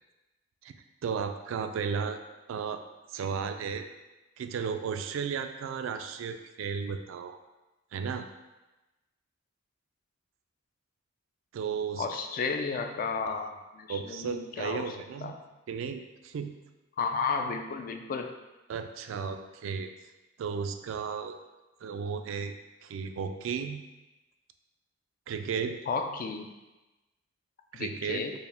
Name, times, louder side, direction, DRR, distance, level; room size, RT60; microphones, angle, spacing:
voice 1, 1.0-2.2 2.5-2.8 3.1-3.8 4.4-7.4 7.9-8.3 11.5-12.1 13.9-15.3 15.7-16.5 18.7-19.9 20.4-21.3 21.8-22.5 22.8-23.8 25.3-25.8 27.7-28.2, right 6 dB, 80° right, 8 dB, 0.3 m, -34 dB
voice 2, 12.0-14.8 15.2-15.3 17.0-18.3 25.9-26.5 27.7-28.3, left 5 dB, 45° left, 5 dB, 0.3 m, -33 dB
4.5 x 2.1 x 3.3 m, 1.1 s
head